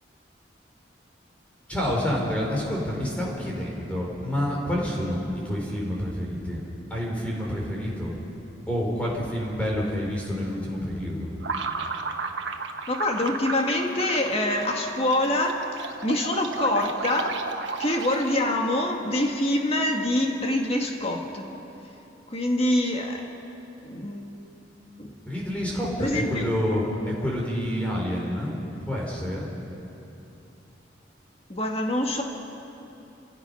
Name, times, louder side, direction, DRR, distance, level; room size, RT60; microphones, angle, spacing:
voice 1, 1.7-6.6 6.9-8.1 8.7-11.3 25.3-28.6 28.9-29.5, equal, 5° left, -3 dB, 4.4 m, -28 dB
sound 1, 11.4-18.6, right 4 dB, 90° right, 1.4 m, -33 dB
voice 2, 12.9-17.4 17.8-21.5 22.3-23.3 23.8-24.3 25.0-25.1 26.0-26.5 31.5-32.2, left 1 dB, 35° left, 2 dB, 1.9 m, -25 dB
29.0 x 16.0 x 5.6 m, 2.9 s
head